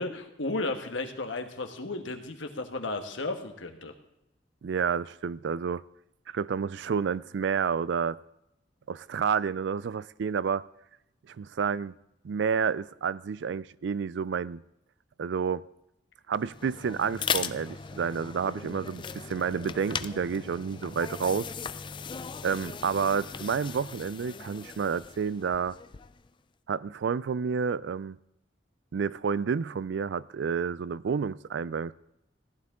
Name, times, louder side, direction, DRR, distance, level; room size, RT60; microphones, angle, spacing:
voice 1, 0.0-3.9, left 2 dB, 80° left, 1.3 m, -34 dB
voice 2, 4.6-5.8 6.3-8.2 8.9-10.6 11.3-11.9 12.2-14.6 15.2-15.6 16.3-21.5 22.4-25.8 26.7-28.2 28.9-31.9, right 6 dB, 65° right, 0.4 m, -30 dB
sound 1, 16.4-26.3, left 6 dB, 25° left, 0.4 m, -38 dB
15.5 x 11.0 x 3.7 m
head